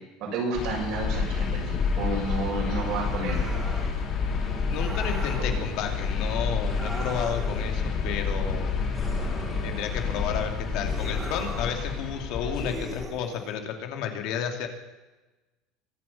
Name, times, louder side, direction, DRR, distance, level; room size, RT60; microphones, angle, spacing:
voice 1, 0.2-3.5 5.4-5.5, right 2 dB, 60° right, -1 dB, 7.7 m, -31 dB
sound 1, 0.5-13.0, left 4 dB, 40° left, 4.3 m, -29 dB
sound 2, 3.1-4.0 4.7-5.5 6.6-7.7 8.9-10.1 10.8-11.8 12.5-13.5, right 1 dB, 10° right, 3.9 m, -39 dB
voice 2, 4.7-8.7 9.6-14.7, left 8 dB, 65° left, 5 dB, 2.6 m, -32 dB
24.0 x 8.0 x 7.2 m, 1.1 s
supercardioid pair, 125°, 0 cm